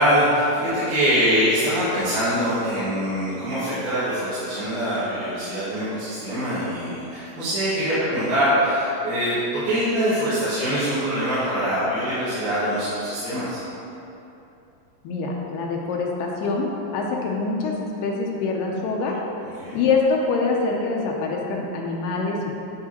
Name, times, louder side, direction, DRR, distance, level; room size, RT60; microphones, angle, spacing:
voice 1, 0.0-13.6 19.6-19.8, equal, 75° right, -15 dB, 3.6 m, -23 dB
voice 2, 15.0-19.2 19.7-22.5, left 4 dB, 75° left, -1 dB, 2.1 m, -25 dB
11.5 x 4.7 x 2.9 m, 2.9 s
omnidirectional pair, 4.4 m